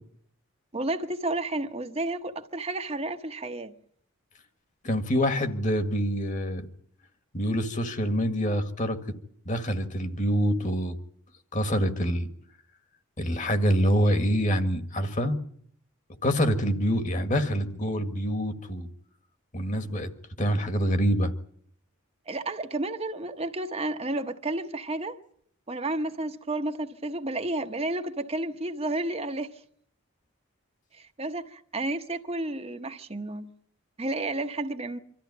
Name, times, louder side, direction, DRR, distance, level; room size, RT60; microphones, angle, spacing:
voice 1, 0.7-3.7 22.3-25.2 25.7-29.5 30.9-33.5 34.0-35.0, right 2 dB, 30° right, 1.0 m, -31 dB
voice 2, 4.8-6.6 7.3-9.0 9.5-11.0 11.5-12.3 13.2-15.4 16.2-18.9 19.5-20.1 20.4-21.3, equal, 35° left, 1.8 m, -26 dB
25.5 x 14.0 x 9.6 m
head